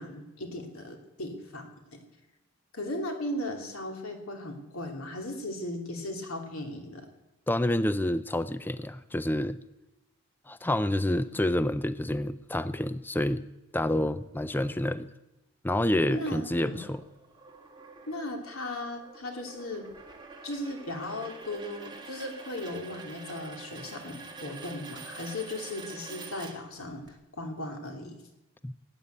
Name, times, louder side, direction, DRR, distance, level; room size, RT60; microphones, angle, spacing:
voice 1, 0.0-2.0 2.7-7.1 11.3-11.4 16.1-16.8 18.1-19.9 20.4-28.2, left 1 dB, 75° left, 3 dB, 2.9 m, -37 dB
voice 2, 7.5-9.6 10.5-13.5 13.7-15.1 15.6-17.0 28.6-28.7, left 1 dB, 10° left, 13 dB, 0.5 m, -28 dB
sound 1, 16.5-27.1, right 4 dB, 20° right, 1.9 m, -46 dB
18.0 x 9.3 x 8.3 m, 0.97 s
head